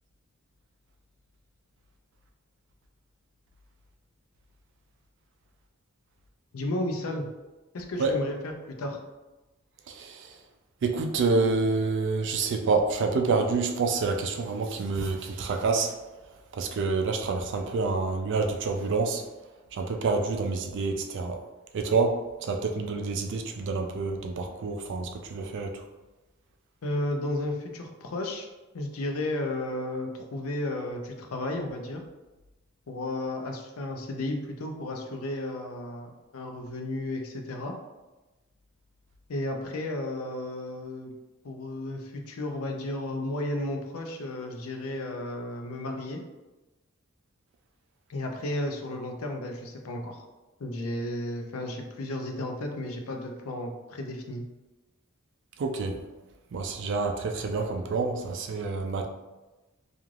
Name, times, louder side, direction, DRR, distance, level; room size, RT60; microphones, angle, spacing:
voice 1, 6.5-7.2 7.7-8.3 8.7-9.0 26.8-28.5 28.7-32.0 32.9-37.7 39.3-41.1 41.4-46.2 48.1-50.2 50.6-54.4, left 1 dB, 85° left, 3 dB, 0.5 m, -33 dB
voice 2, 9.9-10.4 10.8-16.0 16.5-19.2 19.7-21.4 21.7-25.8 55.6-56.0 56.5-59.1, right 4 dB, 60° right, 4 dB, 0.4 m, -28 dB
3.1 x 2.4 x 2.4 m, 1.1 s
head